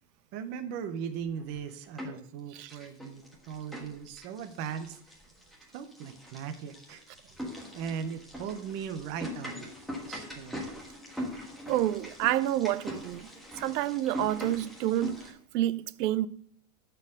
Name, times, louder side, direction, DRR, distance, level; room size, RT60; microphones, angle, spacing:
voice 1, 0.3-5.2 5.7-7.0 7.7-10.7, right 7 dB, 25° right, 0.4 m, -38 dB
sound 1, 1.4-2.3 2.6-15.3, left 1 dB, ahead, 1.2 m, -42 dB
voice 2, 11.7-13.3 13.6-16.3, right 14 dB, 80° right, 0.6 m, -29 dB
10.5 x 4.6 x 6.2 m
supercardioid pair, 155°, 48 cm